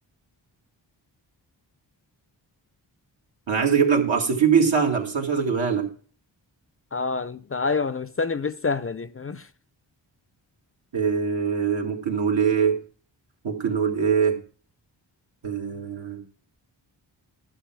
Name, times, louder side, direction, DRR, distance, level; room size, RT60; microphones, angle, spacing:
voice 1, 3.5-5.9 10.9-12.8 13.4-14.4 15.4-16.2, right 6 dB, 75° right, 2.1 m, -22 dB
voice 2, 6.9-9.4, left 4 dB, 30° left, 0.5 m, -27 dB
11.5 x 5.8 x 5.9 m
cardioid pair, 55°, 46 cm